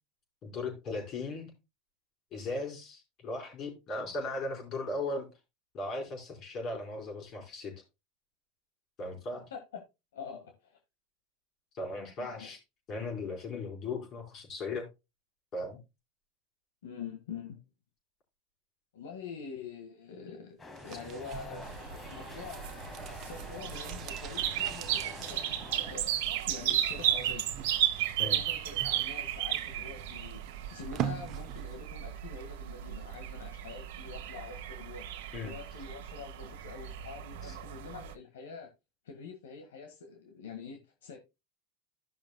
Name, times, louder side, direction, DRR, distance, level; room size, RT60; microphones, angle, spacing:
voice 1, 0.4-1.5 2.3-5.3 5.7-7.7 9.0-9.5 11.7-12.6 12.9-14.9 15.5-15.8 28.2-28.4 35.3-35.5 37.4-37.5, left 2 dB, 45° left, 4.9 m, -37 dB
voice 2, 9.3-9.8 10.1-10.8 12.2-12.5 16.8-17.6 18.9-21.7 22.0-22.6 23.2-26.2 26.5-27.5 28.2-30.4 30.7-35.1 35.4-38.7 39.1-41.2, left 5 dB, 90° left, 1.7 m, -45 dB
sound 1, 20.6-26.0, left 2 dB, 20° left, 1.4 m, -47 dB
sound 2, 20.7-31.9 32.2-32.3, right 9 dB, 45° right, 0.8 m, -44 dB
sound 3, 21.6-38.1, right 11 dB, 75° right, 1.2 m, -35 dB
15.5 x 6.0 x 2.2 m
supercardioid pair, 105°, 0 cm